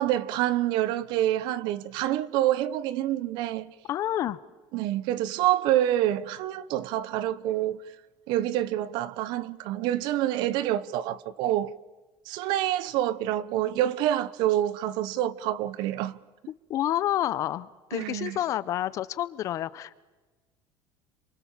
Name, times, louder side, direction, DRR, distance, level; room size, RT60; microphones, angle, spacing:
voice 1, 0.0-3.7 4.7-7.8 8.3-11.7 12.3-16.2 17.9-18.4, right 13 dB, 60° right, 1.0 m, -27 dB
voice 2, 3.9-4.4 16.7-20.0, left 12 dB, 40° left, 0.9 m, -29 dB
28.0 x 25.5 x 7.4 m
cardioid pair, 170°, 9 cm